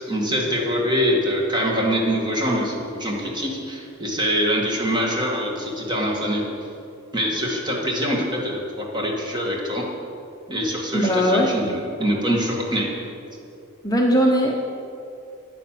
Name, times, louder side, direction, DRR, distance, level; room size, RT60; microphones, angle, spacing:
voice 1, 0.0-6.4 7.1-9.8 10.5-12.9, equal, 20° right, -1 dB, 2.2 m, -24 dB
voice 2, 10.9-11.5 13.8-14.7, equal, 20° left, -1 dB, 0.9 m, -19 dB
9.8 x 9.7 x 7.6 m, 2.6 s
head